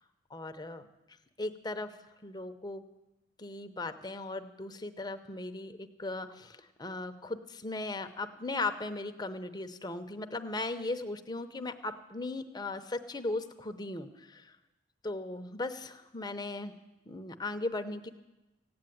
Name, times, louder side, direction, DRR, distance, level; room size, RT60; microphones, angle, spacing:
voice 1, 0.3-0.9 1.4-1.9 2.2-2.8 3.4-14.5 15.0-16.7 17.1-18.1, left 2 dB, 20° left, 8 dB, 0.7 m, -37 dB
16.0 x 8.7 x 9.2 m, 1.0 s
head